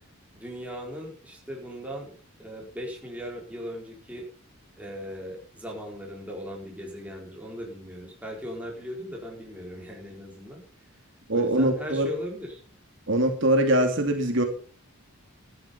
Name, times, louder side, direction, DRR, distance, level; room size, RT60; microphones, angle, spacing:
voice 1, 0.3-2.1 2.4-4.3 4.8-10.6 11.3-12.6, equal, 5° right, -1 dB, 4.2 m, -38 dB
voice 2, 11.3-12.1 13.1-14.4, right 1 dB, 55° right, 4 dB, 2.4 m, -22 dB
13.0 x 11.5 x 5.5 m, 0.38 s
head